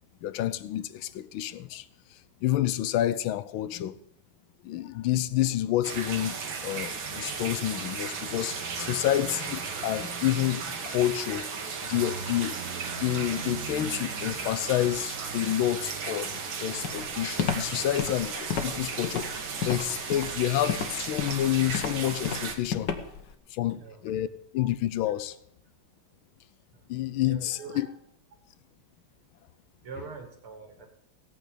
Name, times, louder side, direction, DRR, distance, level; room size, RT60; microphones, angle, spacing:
voice 1, 0.2-1.9 2.4-4.0 4.6-11.5 11.8-12.6 13.0-22.9 23.5-24.3 24.5-25.3 26.9-27.9, left 13 dB, 75° left, 1.4 m, -29 dB
sound 1, 5.8-22.6, right 5 dB, 65° right, 2.1 m, -35 dB
sound 2, 11.9-17.2, right 6 dB, 50° right, 1.1 m, -42 dB
Walk footsteps, 16.8-23.3, left 7 dB, 60° left, 1.6 m, -32 dB
voice 2, 27.2-27.9 29.8-31.0, right 5 dB, 80° right, 3.1 m, -44 dB
16.0 x 9.0 x 5.1 m
omnidirectional pair, 2.3 m